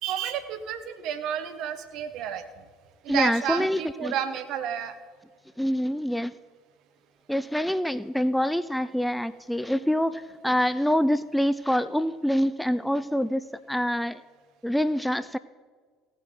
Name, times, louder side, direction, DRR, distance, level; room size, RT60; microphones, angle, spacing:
voice 1, 0.0-2.4 3.0-4.9, right 9 dB, 55° right, 10 dB, 1.1 m, -31 dB
voice 2, 3.1-4.1 5.6-6.3 7.3-14.2 14.6-15.4, equal, ahead, 14 dB, 0.4 m, -26 dB
17.0 x 9.2 x 3.9 m, 1.5 s
figure-of-eight pair, 65°, 0 cm